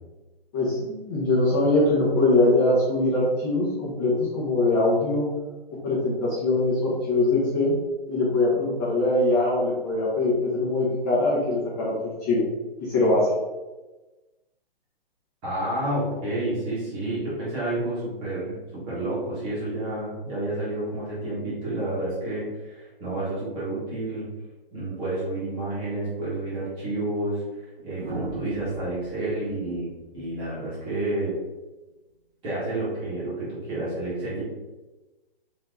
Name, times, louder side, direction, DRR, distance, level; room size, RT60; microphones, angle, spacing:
voice 1, 0.5-5.3 5.8-7.7 8.1-12.4 12.8-13.3, left 2 dB, 20° left, -8 dB, 1.1 m, -22 dB
voice 2, 15.4-24.3 24.7-31.3 32.4-34.4, right 1 dB, 15° right, -9 dB, 1.4 m, -30 dB
sound 1, 26.4-26.6 27.9-31.0 32.5-32.8, right 1 dB, 60° right, 1.0 m, -40 dB
4.5 x 2.9 x 3.8 m, 1.1 s
hypercardioid pair, 165°, 31 cm